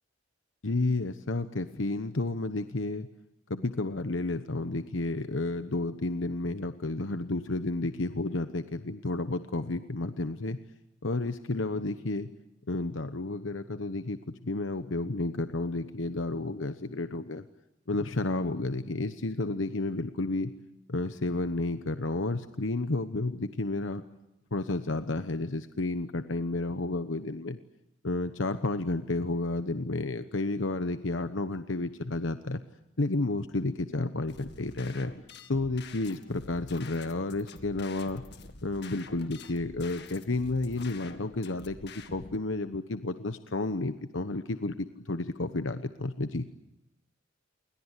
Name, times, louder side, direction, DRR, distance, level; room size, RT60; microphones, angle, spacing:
voice 1, 0.6-3.1 3.5-10.6 11.0-12.3 12.7-17.4 17.9-20.5 20.9-24.0 24.5-27.6 28.0-32.6 33.0-35.1 35.5-38.2 38.6-46.5, left 2 dB, 80° left, 10 dB, 1.1 m, -31 dB
sound 1, 34.3-42.4, left 3 dB, 60° left, 2.0 m, -47 dB
29.0 x 22.5 x 8.3 m, 0.86 s
head